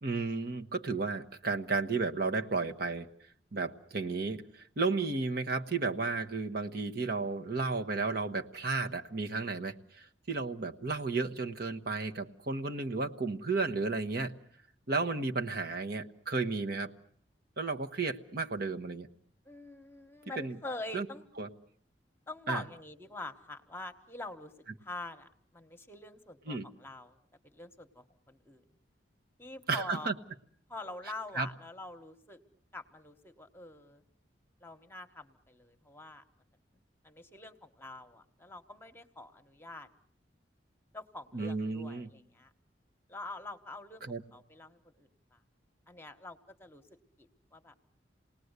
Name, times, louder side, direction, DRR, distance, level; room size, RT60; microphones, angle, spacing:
voice 1, 0.0-3.1 3.5-14.3 14.9-16.9 17.6-19.1 20.4-20.6 20.9-21.1 21.4-21.5 22.5-22.6 26.5-26.7 29.7-30.1 31.3-31.5 41.3-42.1 44.0-44.2, right 3 dB, 55° right, 5 dB, 1.1 m, -33 dB
voice 2, 19.4-21.3 22.3-24.5 24.8-27.2 27.4-28.6 29.4-30.1 30.7-32.4 32.7-34.0 34.6-36.2 37.0-39.9 40.9-42.5 43.1-45.4 45.9-46.8 47.2-47.7, left 2 dB, 15° left, 7 dB, 1.2 m, -45 dB
28.0 x 19.0 x 8.1 m, 0.65 s
head